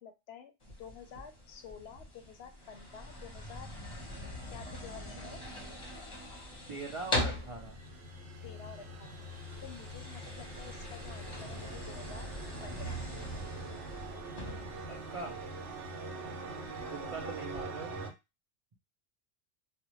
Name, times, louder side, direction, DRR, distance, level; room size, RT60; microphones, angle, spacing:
voice 1, 0.0-3.7 4.5-5.4 8.4-9.2 9.6-12.3 12.6-13.0 16.7-17.3, left 7 dB, 70° left, 7 dB, 0.8 m, -50 dB
sound 1, 0.6-17.6, left 1 dB, 30° left, 0.8 m, -42 dB
sound 2, 6.5-18.1, right 2 dB, 80° right, 0.9 m, -44 dB
voice 2, 6.7-7.8 14.9-15.4 16.9-18.0, right 4 dB, 55° right, 1 dB, 0.3 m, -42 dB
2.5 x 2.1 x 3.0 m, 0.24 s
omnidirectional pair, 1.2 m